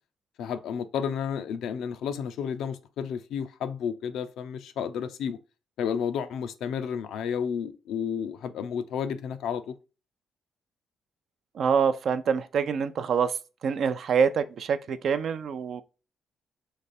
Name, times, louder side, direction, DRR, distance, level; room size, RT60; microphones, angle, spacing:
voice 1, 0.4-5.4 5.8-9.7, left 7 dB, 80° left, 0.5 m, -31 dB
voice 2, 11.6-13.4 13.6-15.8, right 6 dB, 60° right, 0.4 m, -25 dB
3.3 x 3.2 x 4.1 m
cardioid pair, 90°, 0 cm